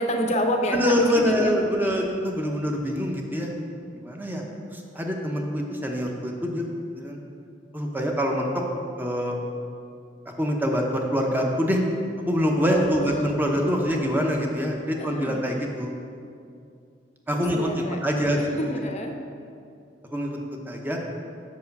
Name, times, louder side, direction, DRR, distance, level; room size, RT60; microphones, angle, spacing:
voice 1, 0.0-1.5 1.8-2.0 12.7-13.3 15.0-15.6 17.3-19.1, equal, 40° left, 4 dB, 0.7 m, -29 dB
voice 2, 0.7-3.5 3.9-4.4 4.7-6.6 7.0-7.2 7.7-8.6 9.0-9.4 10.4-11.8 12.2-15.9 17.3-17.7 18.0-18.7 20.1-20.4 20.6-21.0, equal, 10° right, 1 dB, 0.8 m, -25 dB
7.6 x 4.8 x 5.3 m, 2.4 s
head